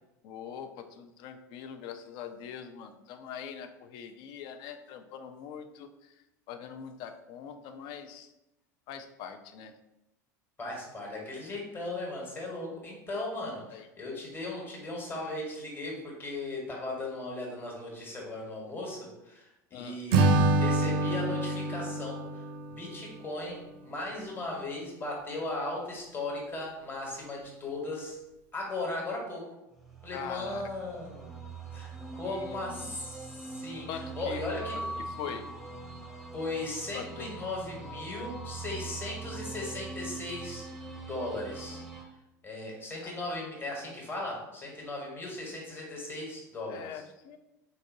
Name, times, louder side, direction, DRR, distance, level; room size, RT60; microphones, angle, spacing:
voice 1, 0.2-6.1 6.5-8.3 8.9-9.7 13.7-13.9 19.7-20.0 30.1-30.6 32.3-33.0 33.9-34.5 35.2-35.4 36.9-37.3 43.0-43.1 46.7-47.4, left 8 dB, 55° left, 8 dB, 0.4 m, -42 dB
voice 2, 10.6-28.2 28.5-29.5 30.0-31.3 31.7-34.9 36.3-40.7 41.0-41.8 42.4-47.0, left 2 dB, 25° left, -2 dB, 1.2 m, -37 dB
Acoustic guitar / Strum, 20.1-23.4, right 2 dB, 55° right, 0.4 m, -26 dB
sound 1, 29.7-42.0, right 3 dB, ahead, 0.7 m, -42 dB
3.9 x 2.5 x 2.6 m, 0.92 s
hypercardioid pair, 75°, 10 cm